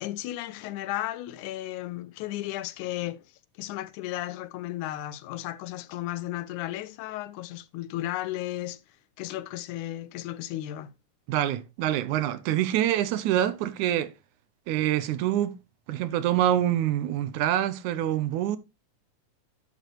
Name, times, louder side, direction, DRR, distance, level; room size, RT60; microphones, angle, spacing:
voice 1, 0.0-3.2 3.6-8.8 9.2-10.9, left 15 dB, 80° left, 2.0 m, -34 dB
voice 2, 11.3-14.1 14.7-15.5 15.9-18.6, right 12 dB, 75° right, 2.2 m, -26 dB
11.0 x 7.1 x 3.1 m
omnidirectional pair, 3.6 m